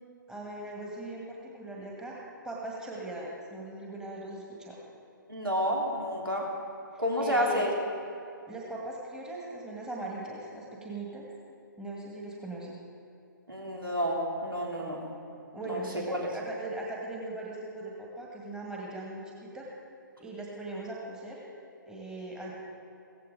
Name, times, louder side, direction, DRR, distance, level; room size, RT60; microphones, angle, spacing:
voice 1, 0.3-4.8 6.9-7.7 8.5-11.3 11.8-12.7 15.5-19.7 20.2-21.4 21.9-22.5, right 2 dB, 5° right, -3 dB, 1.8 m, -40 dB
voice 2, 5.3-6.5 7.0-7.7 13.5-15.0 15.6-15.8 16.1-16.3, equal, 80° right, -2 dB, 3.4 m, -29 dB
16.0 x 15.5 x 4.0 m, 2.7 s
figure-of-eight pair, 130°, 11 cm